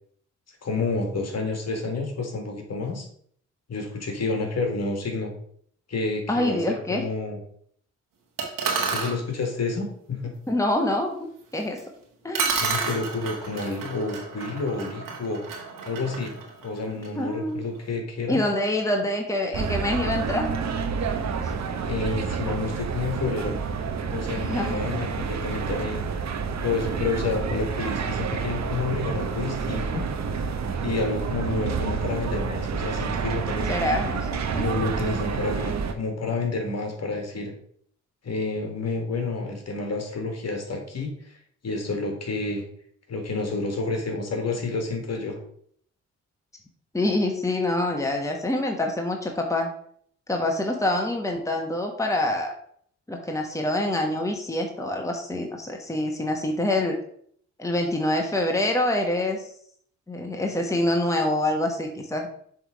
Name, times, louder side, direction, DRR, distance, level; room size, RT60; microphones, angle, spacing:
voice 1, 0.6-3.1 3.7-5.3 5.9-7.4 8.8-10.3 12.5-15.4 15.9-16.3 16.6-18.4 21.9-23.5 24.1-26.0 26.6-30.1 30.8-33.8 34.6-37.5 38.2-41.3 41.6-42.6 43.1-45.4, left 3 dB, 50° left, 3 dB, 1.8 m, -29 dB
voice 2, 6.3-7.0 10.5-11.2 11.5-11.8 12.2-12.5 12.8-12.9 17.2-17.6 18.3-20.5 24.4-24.8 33.7-34.3 34.5-34.6 46.9-49.7 50.3-52.5 53.1-57.0 57.6-59.5 60.1-62.3, left 1 dB, 10° left, 2 dB, 1.3 m, -26 dB
sound 1, 8.4-9.2 11.8-11.9 12.3-17.2, right 5 dB, 80° right, 1.6 m, -30 dB
sound 2, 19.5-35.9, right 5 dB, 55° right, 0.9 m, -29 dB
7.1 x 3.5 x 4.8 m, 0.63 s
supercardioid pair, 55°, 33 cm